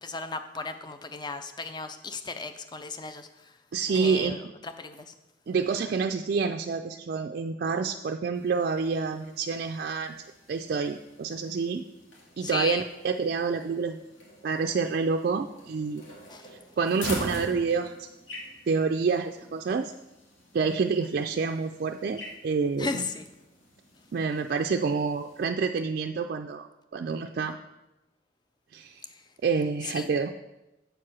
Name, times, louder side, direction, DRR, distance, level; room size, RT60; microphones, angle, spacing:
voice 1, 0.0-3.3 3.9-5.1 12.4-12.8 16.3-16.5 22.8-23.2 29.9-30.1, left 3 dB, 25° left, 9 dB, 0.5 m, -35 dB
voice 2, 3.7-4.5 5.5-10.2 10.5-11.8 12.4-14.0 14.4-16.0 16.8-18.1 18.7-19.9 20.5-23.0 24.1-26.7 26.9-27.6 28.7-29.0 29.4-30.3, right 5 dB, 50° right, 5 dB, 0.3 m, -28 dB
sound 1, 8.3-25.4, equal, 80° left, 2.2 m, -45 dB
7.9 x 4.7 x 6.1 m, 0.96 s
head